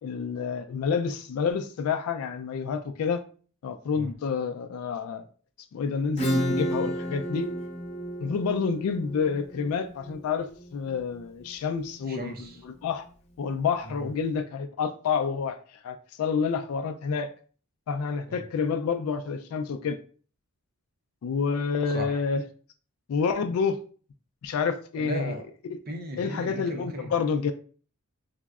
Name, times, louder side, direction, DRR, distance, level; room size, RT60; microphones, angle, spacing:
voice 1, 0.0-3.2 3.6-5.3 5.7-7.5 8.2-12.3 12.6-13.1 13.4-17.3 17.9-20.0 21.2-22.4 23.1-23.8 24.4-25.4 25.7-25.8 26.2-27.5, left 5 dB, 75° left, 0.3 m, -28 dB
Acoustic guitar / Strum, 6.2-11.5, equal, 30° left, 0.6 m, -31 dB
voice 2, 12.1-12.6 13.8-14.1 18.3-18.4 21.9-22.2 25.0-25.4 25.9-27.1, right 1 dB, 40° right, 0.5 m, -36 dB
4.3 x 2.0 x 2.3 m
head